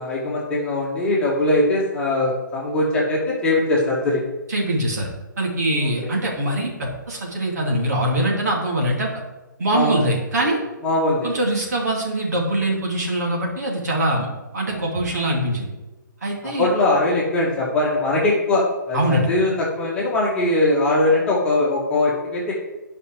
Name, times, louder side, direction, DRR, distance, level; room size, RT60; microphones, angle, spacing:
voice 1, 0.0-4.2 5.8-6.1 9.7-9.9 10.8-11.3 16.6-22.5, left 2 dB, 10° left, -5 dB, 2.0 m, -21 dB
voice 2, 4.5-5.1 5.4-9.1 9.6-10.6 11.2-14.3 14.5-15.7 16.2-16.7 18.9-19.3, right 1 dB, 55° right, -2 dB, 2.9 m, -23 dB
12.0 x 5.4 x 4.8 m, 1.1 s
figure-of-eight pair, 135°, 11 cm